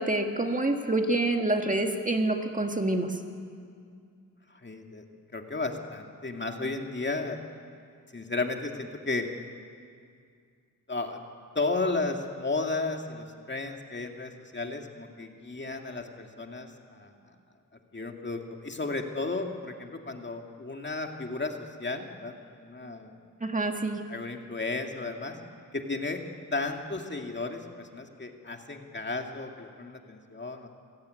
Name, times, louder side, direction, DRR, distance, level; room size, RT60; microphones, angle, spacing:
voice 1, 0.0-3.2 23.4-24.0, right 2 dB, 20° right, 4 dB, 1.9 m, -27 dB
voice 2, 4.5-5.0 5.3-7.4 8.1-9.3 10.9-11.2 11.5-17.2 17.9-23.1 24.1-25.4 25.7-26.2 26.5-30.7, left 3 dB, 30° left, 3 dB, 2.2 m, -34 dB
28.0 x 16.5 x 9.4 m, 2.2 s
wide cardioid pair, 95°, 34 cm